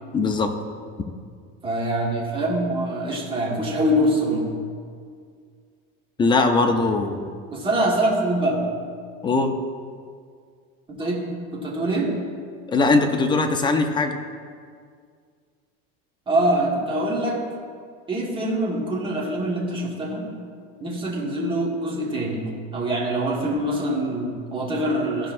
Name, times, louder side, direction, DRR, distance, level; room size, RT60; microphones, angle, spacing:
voice 1, 0.1-0.5 6.2-7.2 9.2-9.5 12.7-14.2, left 3 dB, 15° left, 5 dB, 0.5 m, -20 dB
voice 2, 1.6-4.5 7.5-8.6 10.9-12.2 16.3-17.4 18.1-20.3 20.8-22.4 22.7-25.3, right 1 dB, 15° right, -3 dB, 1.4 m, -24 dB
14.0 x 5.3 x 2.5 m, 2.1 s
cardioid pair, 145°, 30 cm